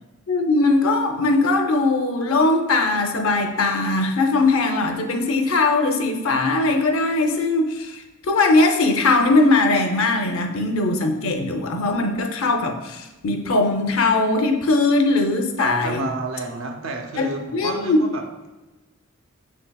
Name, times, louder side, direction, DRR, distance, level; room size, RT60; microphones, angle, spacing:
voice 1, 0.3-16.0 17.1-18.0, left 2 dB, 80° left, 5 dB, 0.6 m, -20 dB
voice 2, 15.6-18.2, right 3 dB, 70° right, 3 dB, 0.6 m, -30 dB
6.3 x 3.8 x 2.2 m, 1.1 s
head